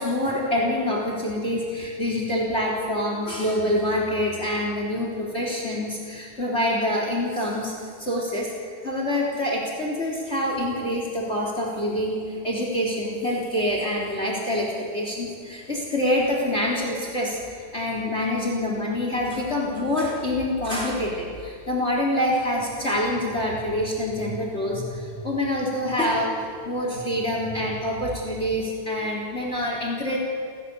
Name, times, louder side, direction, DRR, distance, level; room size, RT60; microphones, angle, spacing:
voice 1, 0.0-8.5 8.8-26.3 26.6-30.2, left 1 dB, 30° left, -2 dB, 4.1 m, -26 dB
29.0 x 18.5 x 8.5 m, 2.1 s
omnidirectional pair, 2.2 m